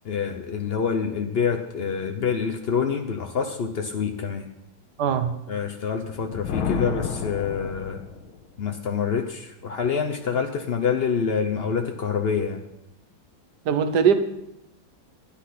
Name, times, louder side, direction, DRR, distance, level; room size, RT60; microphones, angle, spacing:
voice 1, 0.0-4.5 5.5-8.0 8.6-12.6, left 6 dB, 70° left, 5 dB, 0.5 m, -26 dB
voice 2, 5.0-5.3 13.7-14.2, right 7 dB, 60° right, 10 dB, 1.5 m, -20 dB
Thunder, 6.0-8.4, left 6 dB, 90° left, 1.8 m, -31 dB
12.0 x 10.0 x 5.8 m, 0.83 s
omnidirectional pair, 2.2 m